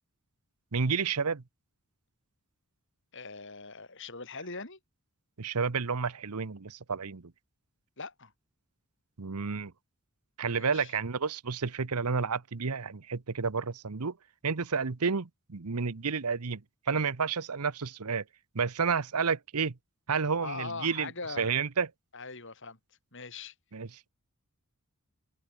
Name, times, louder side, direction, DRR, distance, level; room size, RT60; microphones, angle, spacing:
voice 1, 0.7-1.4 5.4-7.3 9.2-9.7 10.4-14.2 14.4-16.6 16.9-18.2 18.5-19.7 20.1-21.1 21.4-21.9 23.7-24.1, right 5 dB, 90° right, 1.0 m, -30 dB
voice 2, 3.1-4.8 8.0-8.3 10.5-10.9 20.4-21.5 22.1-22.8 23.1-23.5, left 4 dB, 55° left, 6.2 m, -41 dB
open air
head